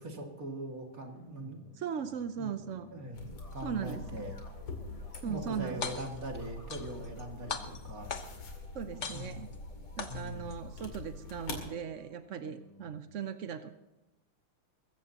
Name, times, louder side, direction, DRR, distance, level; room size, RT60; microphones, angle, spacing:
voice 1, 0.0-1.6 2.4-2.5 2.9-4.4 5.2-7.6 7.8-8.1 8.9-9.4 10.1-10.5, right 1 dB, 40° right, 1 dB, 2.7 m, -41 dB
sound 1, 1.0-13.0, left 1 dB, 15° left, 2.0 m, -57 dB
voice 2, 1.8-2.9 3.6-4.3 5.2-5.9 8.7-9.5 10.0-13.7, right 7 dB, 70° right, 9 dB, 0.7 m, -38 dB
sound 2, 3.1-11.7, left 3 dB, 85° left, 3.3 m, -45 dB
sound 3, 5.7-6.3 6.7-7.2 7.5-8.5 9.0-9.6 10.0-10.6, left 5 dB, 40° left, 1.2 m, -39 dB
23.0 x 15.0 x 2.9 m, 1.0 s
omnidirectional pair, 2.3 m